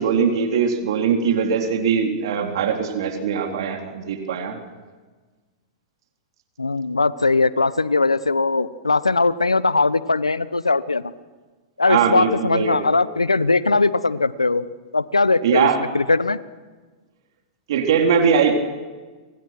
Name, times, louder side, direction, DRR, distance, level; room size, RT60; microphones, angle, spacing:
voice 1, 0.0-4.6 11.9-12.8 15.4-15.8 17.7-18.5, right 6 dB, 60° right, 4 dB, 3.9 m, -21 dB
voice 2, 6.6-11.0 11.8-14.7 14.9-16.4, left 3 dB, 90° left, 16 dB, 1.1 m, -20 dB
29.0 x 25.5 x 6.1 m, 1.3 s
figure-of-eight pair, 105°, 3 cm